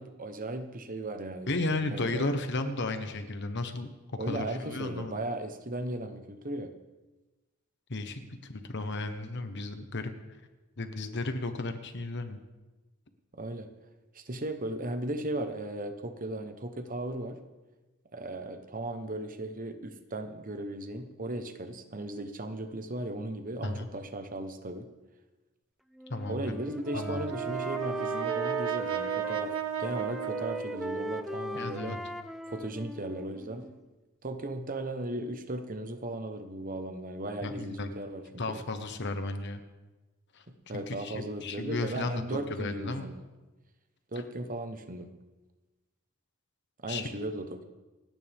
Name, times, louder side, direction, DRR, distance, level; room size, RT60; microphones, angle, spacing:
voice 1, 0.0-2.3 4.2-6.7 13.3-13.7 14.1-17.4 18.1-24.9 26.3-29.5 29.8-32.0 32.5-33.8 34.2-38.6 40.5-43.2 44.1-45.1 46.8-47.6, right 1 dB, 40° right, 8 dB, 1.1 m, -36 dB
voice 2, 1.5-3.9 4.3-5.2 7.9-8.2 8.5-10.1 10.8-12.4 23.6-23.9 26.1-26.5 26.9-27.2 31.5-32.0 37.4-37.9 38.4-39.6 40.3-40.4 40.7-43.1 46.9-47.1, left 2 dB, 55° left, 7 dB, 1.2 m, -34 dB
Wind instrument woodwind instrument, 26.0-29.5 29.8-33.8, equal, ahead, 0.4 m, -39 dB
Brass instrument, 26.8-31.3, right 9 dB, 70° right, 0.8 m, -34 dB
28.5 x 9.6 x 3.6 m, 1.2 s
head